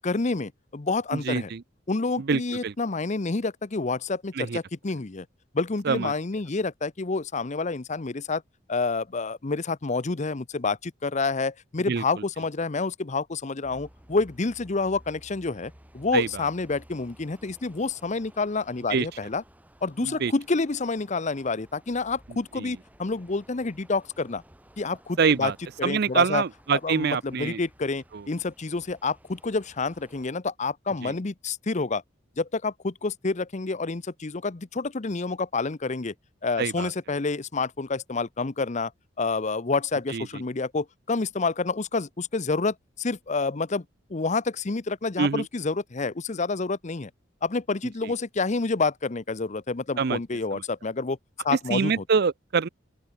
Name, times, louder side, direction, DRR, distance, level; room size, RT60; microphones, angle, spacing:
voice 1, 0.0-1.5 1.9-5.3 5.5-8.4 8.7-19.4 19.8-24.4 24.8-25.5 25.8-26.4 26.7-32.0 32.4-36.1 36.4-38.9 39.2-43.8 44.1-47.1 47.4-51.2 51.4-51.9, left 3 dB, 40° left, 0.7 m, -28 dB
voice 2, 1.1-1.6 2.2-2.7 4.3-4.6 5.8-6.1 11.9-12.0 16.1-16.4 18.9-19.1 20.0-20.3 22.5-22.7 25.2-25.6 25.8-27.6 28.1-28.2 31.0-31.1 36.6-36.9 40.1-40.3 45.2-45.5 48.0-48.1 50.0-50.2 50.5-50.6 51.5-52.7, right 5 dB, 55° right, 0.5 m, -25 dB
sound 1, 13.6-30.3, equal, 10° right, 6.5 m, -55 dB
open air
head